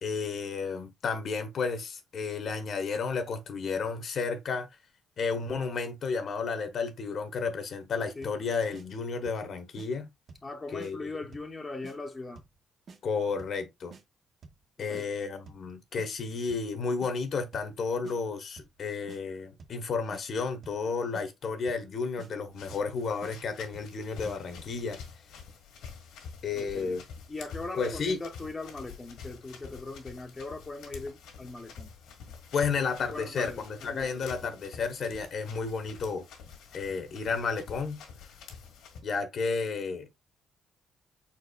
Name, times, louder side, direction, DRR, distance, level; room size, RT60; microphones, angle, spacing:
voice 1, 0.0-4.7 5.2-10.1 10.7-11.2 13.0-14.0 14.8-25.0 26.4-27.0 27.8-28.2 32.5-36.2 36.7-38.0 39.0-40.3, left 5 dB, 55° left, 0.9 m, -32 dB
sound 1, 8.2-8.4 8.7-8.9 9.3-9.5 9.8-9.9 10.3-10.5 10.8-10.9 11.3-11.5 11.8-12.0 12.4-12.6 12.9-13.0 13.4-13.6 13.9-14.0 14.4-14.6 14.9-15.1 15.5-15.7 16.0-16.1 16.5-16.7 17.0-17.1 17.5-17.8 18.0-18.2 18.6-18.8 19.1-19.2 19.6-19.8 20.1-20.2 20.6-20.9 21.1-21.3 21.7-21.9 22.2-22.3 22.7-22.9 23.2-23.3 23.7-24.0 24.3-24.4, right 4 dB, 55° right, 0.8 m, -50 dB
voice 2, 10.4-12.4 14.8-15.1 26.5-26.9 27.3-31.9 33.1-34.3, left 3 dB, 25° left, 0.7 m, -40 dB
sound 2, 22.5-39.0, left 6 dB, 85° left, 1.4 m, -48 dB
4.5 x 4.2 x 2.3 m
cardioid pair, 90°, 0 cm